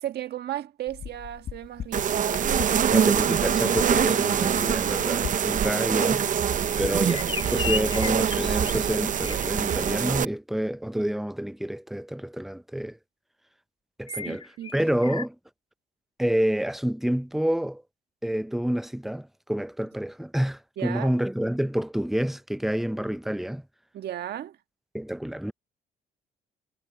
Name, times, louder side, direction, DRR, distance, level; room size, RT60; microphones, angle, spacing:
voice 1, 0.0-2.9 14.1-14.7 20.8-21.1 23.9-24.6, right 12 dB, 65° right, 1.6 m, -35 dB
sound 1, 0.9-10.0, left 9 dB, 50° left, 1.1 m, -42 dB
sound 2, 1.9-10.2, right 8 dB, 45° right, 0.8 m, -24 dB
voice 2, 2.9-6.3 6.8-13.0 14.0-15.4 16.2-17.8 18.2-23.6 24.9-25.5, right 1 dB, ahead, 0.6 m, -28 dB
sound 3, 6.7-9.9 14.1-15.3, left 5 dB, 30° left, 3.3 m, -35 dB
supercardioid pair, 70°, 18 cm